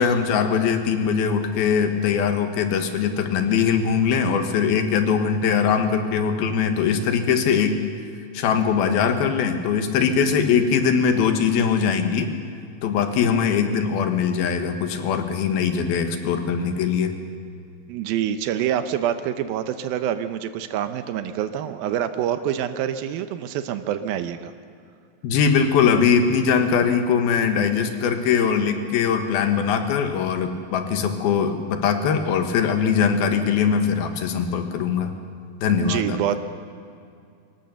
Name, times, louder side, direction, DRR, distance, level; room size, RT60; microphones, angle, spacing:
voice 1, 0.0-7.8 8.3-12.3 12.8-17.2 25.2-35.1 35.6-36.2, left 6 dB, 85° left, 6 dB, 3.3 m, -21 dB
voice 2, 17.9-24.5 35.7-36.4, right 10 dB, 85° right, 10 dB, 2.6 m, -26 dB
23.5 x 18.0 x 6.9 m, 2.4 s
omnidirectional pair, 4.2 m